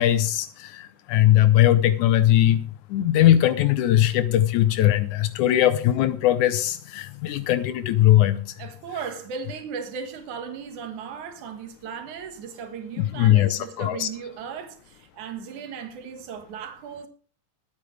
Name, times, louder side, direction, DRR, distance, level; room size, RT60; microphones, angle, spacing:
voice 1, 0.0-2.6 2.9-8.4 13.0-14.1, left 12 dB, 80° left, 2.2 m, -20 dB
voice 2, 8.6-17.1, right 6 dB, 75° right, 3.0 m, -36 dB
22.0 x 8.6 x 3.3 m
omnidirectional pair, 3.5 m